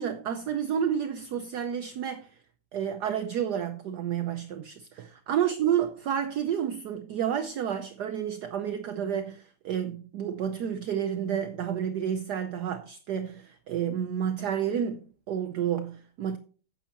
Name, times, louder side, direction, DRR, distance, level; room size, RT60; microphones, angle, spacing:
voice 1, 0.0-2.4 2.7-16.4, right 9 dB, 70° right, 1.0 m, -30 dB
12.0 x 8.9 x 2.9 m
omnidirectional pair, 2.4 m